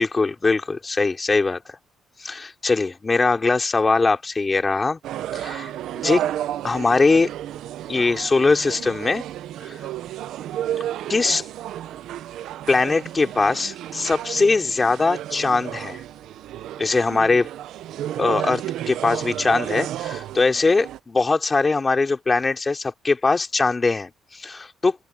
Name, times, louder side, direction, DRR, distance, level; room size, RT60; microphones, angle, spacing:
voice 1, 0.0-1.6 2.2-5.0 5.3-5.7 6.0-6.2 6.6-7.3 7.9-9.2 9.7-9.8 11.1-11.4 12.7-16.0 16.8-17.5 18.2-25.0, left 3 dB, 25° left, 3.2 m, -21 dB
sound 1, 5.0-21.0, right 12 dB, 80° right, 0.8 m, -32 dB
open air
cardioid pair, 90°, 0 cm